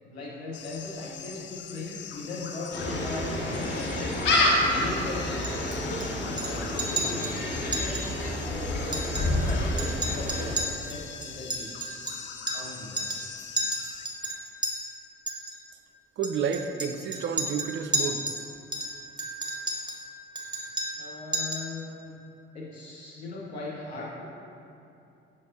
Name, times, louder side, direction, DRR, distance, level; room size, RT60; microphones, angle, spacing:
voice 1, 0.0-4.1 4.5-5.8 6.3-8.1 8.3-11.7 12.5-13.2 21.0-22.1 22.5-24.2, left 2 dB, 80° left, -5 dB, 1.2 m, -38 dB
sound 1, 0.5-14.1, left 7 dB, 40° left, 0.5 m, -43 dB
Gull seagull, 2.7-10.5, left 1 dB, 60° left, 1.3 m, -28 dB
Chink clink, 5.4-6.1 6.4-6.5 6.8-7.4 7.7-8.1 8.3-8.4 8.8-9.5 9.8-12.7 13.0-13.3 13.6-14.7 15.3-15.6 16.2-18.4 18.7-20.0 20.4-21.1 21.3-21.7, right 1 dB, 15° right, 1.1 m, -32 dB
voice 2, 16.2-18.3, right 7 dB, 40° right, 8 dB, 0.5 m, -30 dB
6.9 x 6.8 x 2.7 m, 2.7 s
figure-of-eight pair, 50°, 31 cm